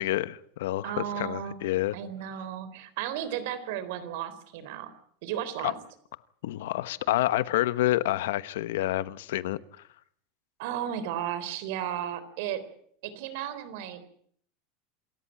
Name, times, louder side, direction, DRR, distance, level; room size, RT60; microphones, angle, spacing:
voice 1, 0.0-2.0 5.6-5.7 6.4-9.6, left 15 dB, 85° left, 16 dB, 1.1 m, -28 dB
voice 2, 0.8-1.6 1.9-4.9 5.2-5.7 10.6-12.6 13.0-14.0, right 10 dB, 60° right, 13 dB, 4.0 m, -34 dB
27.5 x 14.5 x 8.9 m, 0.64 s
supercardioid pair, 165°, 0 cm